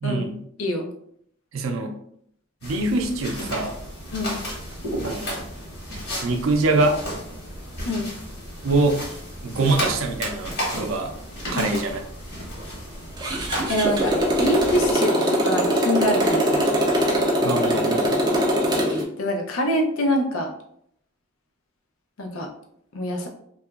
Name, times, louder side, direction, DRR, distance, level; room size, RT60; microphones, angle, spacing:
voice 1, 0.0-0.4 1.5-2.0 2.6-3.8 5.0-5.5 6.2-7.0 8.6-9.0 9.4-11.1 11.5-12.0 17.4-18.2, right 2 dB, 80° right, 4 dB, 0.4 m, -24 dB
sound 1, 2.6-14.9, equal, 50° left, 1.1 m, -33 dB
Motorcycle, 13.2-19.0, equal, 20° right, 0.3 m, -22 dB
voice 2, 13.7-16.7 19.2-20.5 22.2-22.5 22.9-23.3, equal, 85° left, 2 dB, 0.5 m, -25 dB
2.8 x 2.3 x 2.3 m, 0.69 s
head